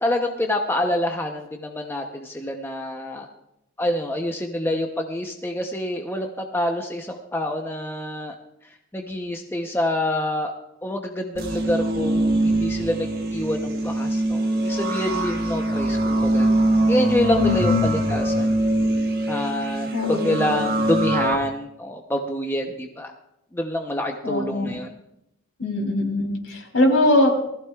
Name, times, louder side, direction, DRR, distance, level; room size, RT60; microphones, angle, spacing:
voice 1, 0.0-3.3 3.8-8.4 8.9-10.5 10.8-16.5 16.9-18.5 19.3-23.1 23.5-24.9, left 1 dB, 10° left, 2 dB, 0.7 m, -26 dB
sound 1, 11.4-21.4, right 1 dB, 45° right, 1.3 m, -23 dB
voice 2, 17.4-17.9 19.9-20.4 24.2-24.7 25.6-27.3, left 2 dB, 70° left, 0 dB, 3.7 m, -21 dB
20.0 x 15.0 x 2.4 m, 0.84 s
head